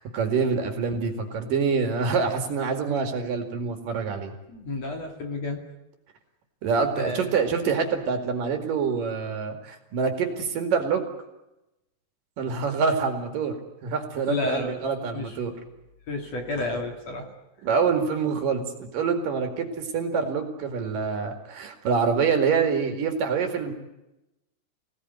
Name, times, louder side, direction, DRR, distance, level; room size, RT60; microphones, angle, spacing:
voice 1, 0.0-4.3 6.6-11.0 12.4-13.6 13.8-15.5 17.6-23.7, right 5 dB, 55° right, 5 dB, 3.6 m, -26 dB
voice 2, 4.5-5.6 6.9-7.3 14.3-14.8 15.1-15.4 16.1-17.3, left 2 dB, 45° left, 3 dB, 3.1 m, -31 dB
25.5 x 18.0 x 9.6 m, 0.94 s
omnidirectional pair, 4.8 m